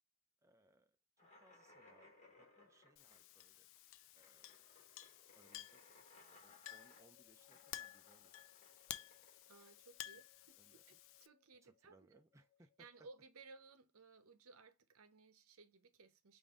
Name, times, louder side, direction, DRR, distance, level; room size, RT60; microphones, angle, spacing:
voice 1, 0.4-3.7 4.1-4.6 5.3-8.4 8.8-9.2 9.4-9.6 10.6-11.0 11.6-12.9, right 2 dB, 15° right, 0.4 m, -71 dB
sound 1, 1.2-10.6, left 2 dB, 30° left, 1.7 m, -66 dB
Chink clink, 3.0-11.3, left 13 dB, 60° left, 0.3 m, -54 dB
sound 2, 6.6-13.1, left 11 dB, 5° left, 2.8 m, -73 dB
voice 2, 9.5-12.2 12.8-16.4, right 3 dB, 70° right, 0.7 m, -61 dB
5.2 x 2.6 x 3.5 m
head